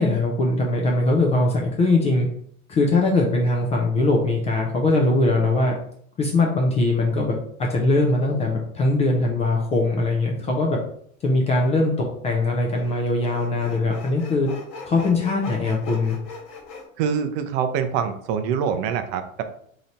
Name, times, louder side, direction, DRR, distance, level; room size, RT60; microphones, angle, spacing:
voice 1, 0.0-2.3 2.7-5.7 6.2-10.8 11.2-11.9 12.2-14.5 14.9-16.2, left 2 dB, 15° left, -1 dB, 0.3 m, -21 dB
Sawing, 11.5-11.6 12.7-16.8, left 4 dB, 30° left, 1.3 m, -39 dB
voice 2, 17.0-19.4, right 7 dB, 45° right, 9 dB, 0.5 m, -25 dB
3.1 x 2.8 x 4.0 m, 0.65 s
hypercardioid pair, 110°, 42 cm